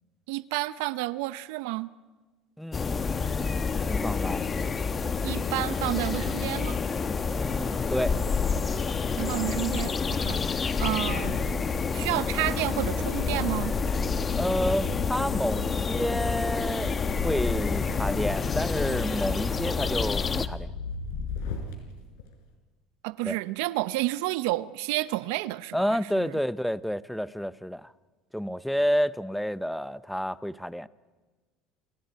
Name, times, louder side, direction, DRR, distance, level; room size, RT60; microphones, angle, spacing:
voice 1, 0.3-1.9 5.2-6.8 9.2-10.4 10.8-11.3 11.9-13.7 23.0-26.4, right 19 dB, 80° right, 0.6 m, -30 dB
voice 2, 2.6-4.4 7.3-8.2 14.3-16.9 17.2-20.7 23.2-23.4 25.7-27.9 28.3-30.9, equal, ahead, 0.6 m, -30 dB
sound 1, 2.7-20.5, left 5 dB, 25° left, 1.0 m, -28 dB
sound 2, 11.1-21.7 22.2-22.3, left 4 dB, 85° left, 4.7 m, -37 dB
28.5 x 28.0 x 4.6 m
supercardioid pair, 120°, 0 cm